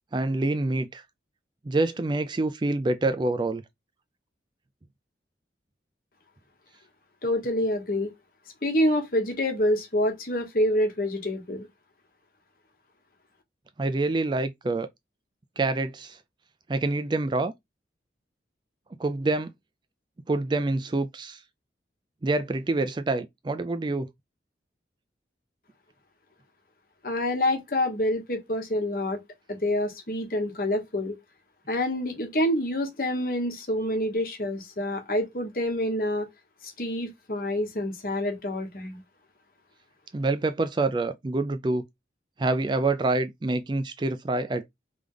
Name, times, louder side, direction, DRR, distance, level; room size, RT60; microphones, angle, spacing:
voice 1, 0.1-1.0 1.7-3.6 13.8-14.9 15.6-16.2 16.7-17.5 19.0-19.5 20.3-21.4 22.2-24.1 40.1-41.8 42.4-44.7, right 2 dB, 25° right, 0.3 m, -26 dB
voice 2, 7.2-8.1 8.6-11.7 27.0-29.2 29.5-31.2 31.7-36.3 36.8-39.0, left 1 dB, 50° left, 1.1 m, -27 dB
3.4 x 3.1 x 3.7 m
head